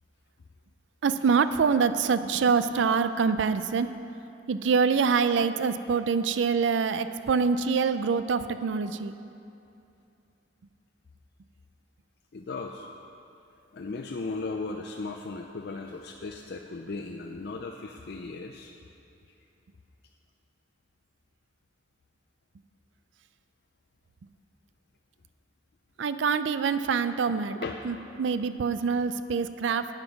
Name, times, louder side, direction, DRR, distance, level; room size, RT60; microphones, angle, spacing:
voice 1, 1.0-3.9 4.5-9.1 26.0-27.6 27.8-29.9, right 5 dB, 80° right, 12 dB, 0.4 m, -25 dB
voice 2, 12.3-12.9 13.7-18.7 27.3-27.8 28.1-28.2, left 3 dB, 60° left, 2 dB, 0.5 m, -37 dB
9.2 x 8.0 x 5.8 m, 2.7 s
head